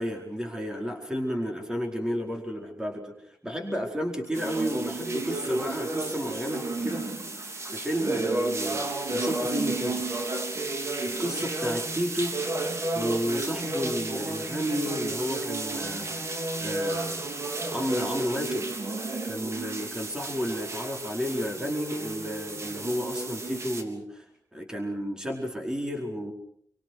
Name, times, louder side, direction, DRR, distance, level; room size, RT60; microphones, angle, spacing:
voice 1, 0.0-3.1 3.4-7.1 7.7-10.1 11.2-12.4 12.9-17.3 17.7-18.7 19.2-24.2 24.5-26.3, equal, 10° right, 2 dB, 4.7 m, -32 dB
sound 1, 4.3-23.8, right 2 dB, 45° right, 3.4 m, -32 dB
28.5 x 25.0 x 6.3 m, 0.66 s
wide cardioid pair, 180°, 7 cm